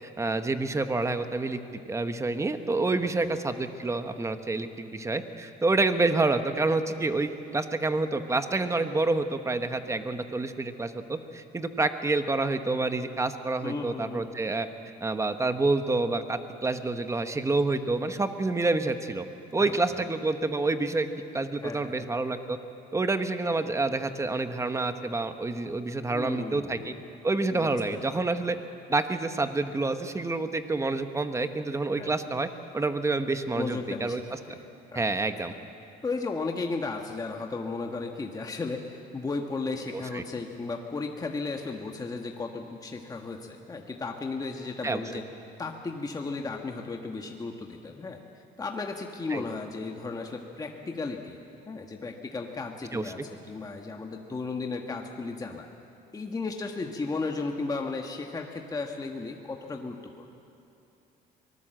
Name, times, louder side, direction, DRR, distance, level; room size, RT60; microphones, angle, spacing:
voice 1, 0.2-1.6 1.9-14.7 15.0-19.2 19.5-21.1 21.3-22.6 22.9-26.9 27.2-28.6 28.9-32.5 32.7-34.2 34.9-35.5 39.9-40.2 44.8-45.0 49.3-49.4 52.9-53.0, right 3 dB, 15° right, 8 dB, 1.2 m, -28 dB
voice 2, 13.6-14.3 19.6-20.0 21.6-22.0 26.1-27.0 27.5-27.7 31.9-32.2 33.5-34.2 34.5-34.6 34.9-35.0 36.0-45.2 45.6-48.2 48.6-51.4 51.7-55.7 56.1-60.3, left 3 dB, 20° left, 2 dB, 1.4 m, -35 dB
24.0 x 19.0 x 7.8 m, 2.7 s
cardioid pair, 110°, 17 cm